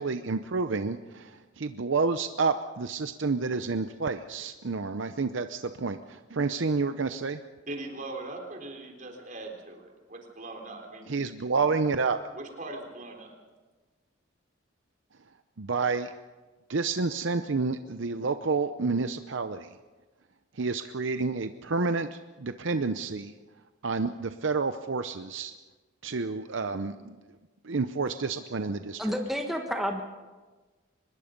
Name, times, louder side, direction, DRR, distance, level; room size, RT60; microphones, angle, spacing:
voice 1, 0.0-7.4 11.1-12.2 15.6-16.1 16.7-19.7 20.6-23.3 23.8-25.5 26.0-27.2 27.6-29.1, right 4 dB, 70° right, 9 dB, 0.7 m, -29 dB
voice 2, 7.7-11.2 12.3-13.4 20.5-20.9, right 2 dB, 40° right, 2 dB, 3.9 m, -41 dB
voice 3, 29.0-30.0, equal, ahead, 2 dB, 1.4 m, -30 dB
24.5 x 21.0 x 5.3 m, 1.3 s
head